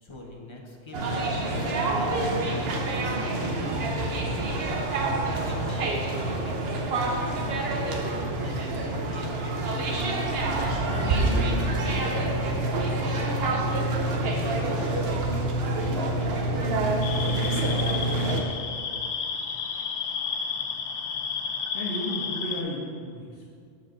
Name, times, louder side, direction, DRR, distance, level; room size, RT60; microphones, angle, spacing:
voice 1, 0.0-8.1 8.4-10.5 10.9-17.9, left 1 dB, 30° left, -1 dB, 0.8 m, -41 dB
sound 1, 0.9-18.4, right 2 dB, 65° right, 0.9 m, -27 dB
sound 2, 17.0-22.6, left 6 dB, 85° left, 0.9 m, -32 dB
voice 2, 21.7-23.5, equal, 60° left, -7 dB, 1.2 m, -33 dB
13.0 x 4.5 x 2.5 m, 2.3 s
omnidirectional pair, 1.2 m